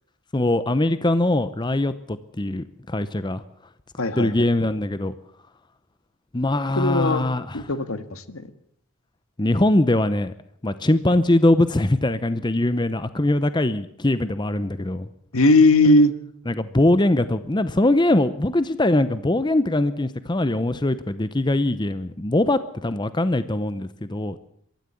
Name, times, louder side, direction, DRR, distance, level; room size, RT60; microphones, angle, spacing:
voice 1, 0.3-3.4 4.2-5.1 6.3-7.6 9.4-10.3 10.6-15.1 16.5-24.4, left 1 dB, 20° left, 13 dB, 0.7 m, -22 dB
voice 2, 4.0-4.3 6.8-7.2 7.5-8.4 15.3-16.1, left 2 dB, 70° left, 11 dB, 1.7 m, -18 dB
23.5 x 13.5 x 8.4 m, 0.71 s
head